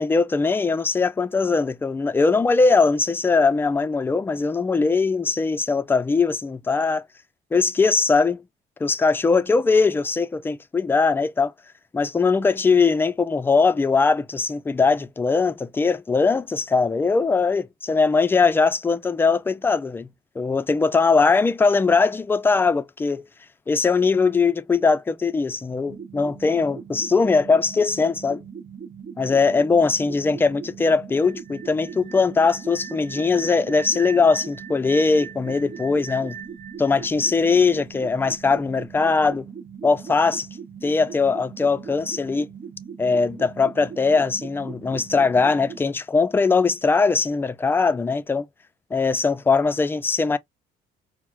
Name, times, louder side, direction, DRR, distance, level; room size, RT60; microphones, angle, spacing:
voice 1, 0.0-7.0 7.5-8.4 8.8-11.5 11.9-20.1 20.4-23.3 23.7-28.4 29.2-36.4 36.8-39.5 39.8-40.5 40.8-42.5 43.0-48.5 48.9-50.4, left 4 dB, 15° left, 0.3 m, -20 dB
sound 1, 25.8-45.8, right 6 dB, 40° right, 1.0 m, -40 dB
sound 2, 31.1-38.1, right 8 dB, 85° right, 0.9 m, -41 dB
4.4 x 2.0 x 2.3 m
cardioid pair, 110°, 17 cm